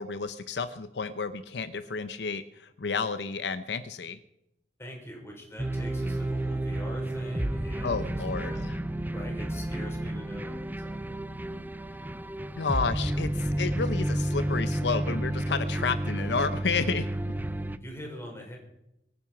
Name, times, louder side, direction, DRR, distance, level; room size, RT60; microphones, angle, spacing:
voice 1, 0.0-4.2 7.8-8.8 12.6-17.1, left 4 dB, 75° left, 13 dB, 0.7 m, -31 dB
voice 2, 4.8-8.1 8.4-8.6 9.1-11.2 17.8-18.6, equal, 15° left, 0 dB, 4.5 m, -43 dB
sound 1, 5.6-17.8, right 1 dB, 10° right, 0.5 m, -31 dB
23.5 x 9.6 x 5.9 m, 0.86 s
head